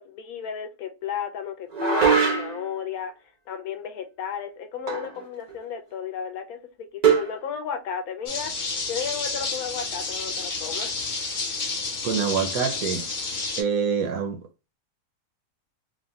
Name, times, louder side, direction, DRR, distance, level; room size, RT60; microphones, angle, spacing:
voice 1, 0.0-3.1 3.5-11.0, left 7 dB, 70° left, 1.0 m, -34 dB
sound 1, 1.7-2.7 4.9-5.2 5.5-5.6 7.0-7.4, right 6 dB, 50° right, 0.5 m, -22 dB
sound 2, 8.3-13.6, left 4 dB, 50° left, 0.5 m, -30 dB
voice 2, 12.0-13.1 13.6-14.4, right 6 dB, 70° right, 1.0 m, -26 dB
3.4 x 2.1 x 2.6 m
omnidirectional pair, 1.7 m